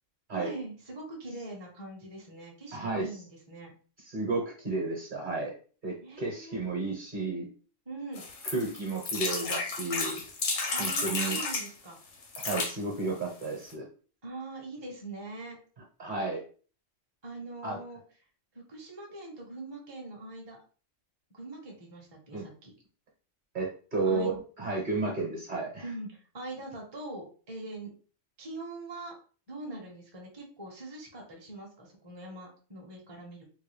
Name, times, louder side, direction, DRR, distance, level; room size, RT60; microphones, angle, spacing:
voice 1, 0.3-3.7 6.0-6.7 7.9-8.2 10.7-12.0 14.2-15.6 17.2-18.0 18.7-20.6 21.3-22.7 24.0-24.3 25.8-27.9 28.4-29.1 29.5-33.4, right 2 dB, 25° right, -1 dB, 0.8 m, -42 dB
voice 2, 2.7-3.1 4.0-5.5 5.8-7.5 8.5-10.2 10.8-11.4 12.4-13.9 16.0-16.4 17.6-17.8 22.3-22.4 23.5-25.8, right 3 dB, 45° right, 1 dB, 1.1 m, -32 dB
sound 1, 8.2-11.7 12.2-12.7 13.4-13.5 13.7-13.8, left 3 dB, 70° left, 1.1 m, -32 dB
3.7 x 2.3 x 3.2 m, 0.39 s
omnidirectional pair, 1.3 m